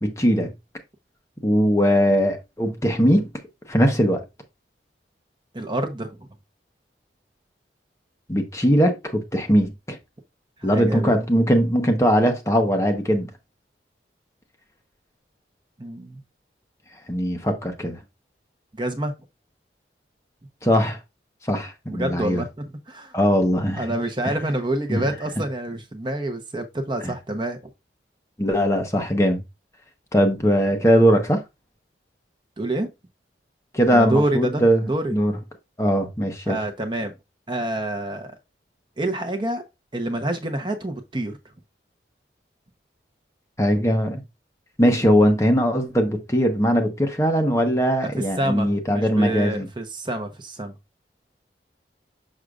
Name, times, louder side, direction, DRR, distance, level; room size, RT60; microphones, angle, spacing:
voice 1, 0.0-0.5 1.4-3.3 3.7-4.2 8.3-10.0 10.6-13.3 17.1-18.0 20.6-21.0 21.5-22.4 23.1-23.9 24.2-24.4 24.9-25.0 27.0-27.1 28.4-29.4 30.1-31.4 33.7-35.3 35.8-36.6 43.6-44.2 44.8-49.7, equal, 15° left, 0.9 m, -20 dB
voice 2, 5.5-6.3 10.6-11.2 15.8-16.2 18.8-19.1 21.9-22.5 22.9-23.1 23.8-27.6 32.6-32.9 33.9-35.1 36.5-37.1 37.5-38.4 39.0-39.6 39.9-41.4 48.2-50.7, right 1 dB, 25° right, 0.9 m, -27 dB
6.4 x 6.3 x 2.4 m
head